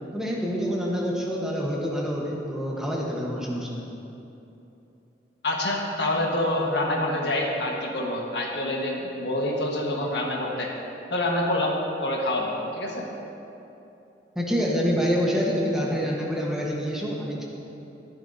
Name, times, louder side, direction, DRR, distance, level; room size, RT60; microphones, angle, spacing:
voice 1, 0.1-3.9 14.3-17.4, equal, 5° right, -4 dB, 1.2 m, -27 dB
voice 2, 5.4-10.7 11.1-13.1, left 1 dB, 70° left, -1 dB, 1.5 m, -26 dB
13.5 x 11.0 x 2.8 m, 2.9 s
head